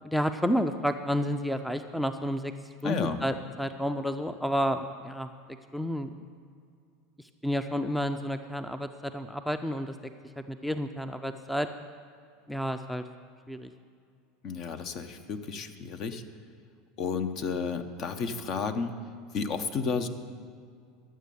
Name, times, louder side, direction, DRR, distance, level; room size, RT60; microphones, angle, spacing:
voice 1, 0.0-2.5 2.8-5.3 5.7-6.1 7.4-9.9 10.4-11.7 12.5-13.0 13.5-13.7, equal, 5° left, 9 dB, 0.5 m, -30 dB
voice 2, 2.8-3.2 14.4-16.2 17.0-18.9 19.3-20.1, left 5 dB, 50° left, 9 dB, 0.9 m, -32 dB
11.0 x 7.6 x 6.9 m, 2.3 s
hypercardioid pair, 90°, 0 cm